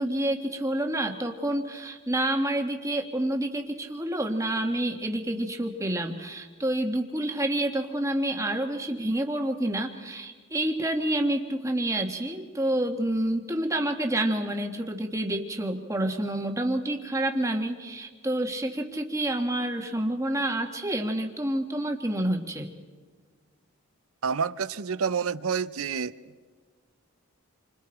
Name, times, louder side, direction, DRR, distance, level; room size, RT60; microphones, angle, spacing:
voice 1, 0.0-22.7, right 1 dB, 15° right, 3 dB, 1.4 m, -28 dB
voice 2, 24.2-26.2, right 6 dB, 75° right, 15 dB, 0.7 m, -28 dB
29.0 x 25.0 x 4.4 m, 1.5 s
head